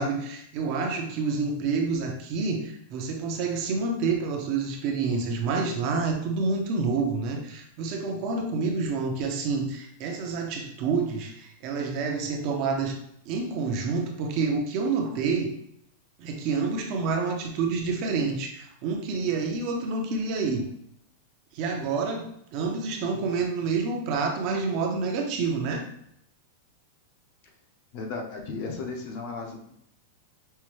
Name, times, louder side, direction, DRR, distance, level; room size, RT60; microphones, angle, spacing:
voice 1, 0.0-13.0 13.3-15.5 16.2-20.7 21.5-25.9, right 4 dB, 40° right, 2 dB, 0.6 m, -28 dB
voice 2, 27.9-29.7, left 4 dB, 45° left, 2 dB, 0.7 m, -35 dB
5.5 x 2.2 x 3.1 m, 0.72 s
supercardioid pair, 170°, 0 cm